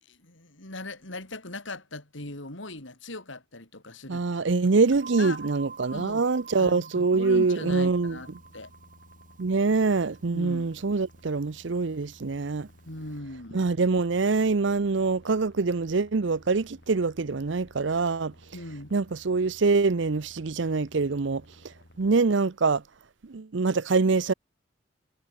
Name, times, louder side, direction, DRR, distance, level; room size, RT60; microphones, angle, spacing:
voice 1, 0.1-4.5 5.2-5.5 5.9-6.3 6.6-8.7 10.3-10.7 12.9-13.7 18.5-18.9, left 2 dB, 75° left, 5.0 m, -39 dB
voice 2, 4.1-8.2 9.4-12.7 13.5-18.3 18.9-21.4 22.0-22.8 23.2-24.3, right 4 dB, 65° right, 0.6 m, -24 dB
sound 1, 5.0-13.2, right 5 dB, 40° right, 1.7 m, -48 dB
sound 2, 7.7-22.2, left 1 dB, 55° left, 5.7 m, -55 dB
head